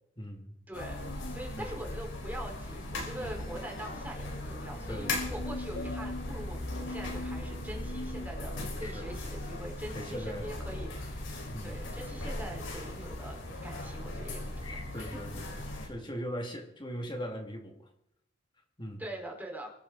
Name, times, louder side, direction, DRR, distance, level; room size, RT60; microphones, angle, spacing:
voice 1, 0.2-0.6 1.6-1.7 4.9-5.4 8.8-9.1 9.9-10.5 11.5-11.8 14.6-17.9 18.8-19.0, equal, 25° left, 2 dB, 2.7 m, -40 dB
sound 1, 0.7-15.9, left 1 dB, 90° left, 5.4 m, -38 dB
voice 2, 0.7-1.0 1.3-14.8 19.0-19.7, right 1 dB, 10° right, 0 dB, 4.8 m, -43 dB
24.0 x 11.5 x 4.1 m, 0.75 s
head